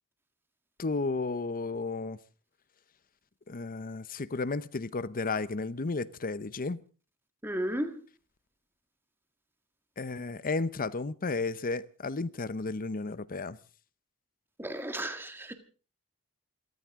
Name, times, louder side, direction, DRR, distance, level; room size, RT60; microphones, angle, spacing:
voice 1, 0.8-2.2 3.5-6.8 10.0-13.6, left 3 dB, 40° left, 0.8 m, -33 dB
voice 2, 7.4-8.0 14.6-15.5, right 1 dB, 10° right, 1.7 m, -34 dB
28.0 x 14.0 x 3.7 m
head